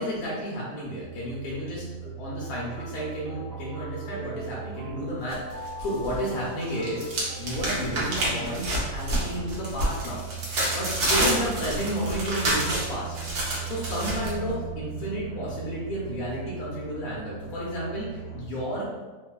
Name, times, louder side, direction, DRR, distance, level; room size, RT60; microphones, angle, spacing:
voice 1, 0.0-7.1 7.4-10.2 10.7-13.2 13.6-19.0, equal, 75° left, -5 dB, 1.1 m, -32 dB
sound 1, 1.0-18.4, right 8 dB, 45° left, 0.7 m, -39 dB
sound 2, 2.4-7.4, equal, 65° right, 1.2 m, -43 dB
sound 3, 5.3-6.2 6.5-14.3, right 1 dB, 85° right, 1.3 m, -28 dB
3.5 x 2.0 x 2.2 m, 1.3 s
omnidirectional pair, 1.6 m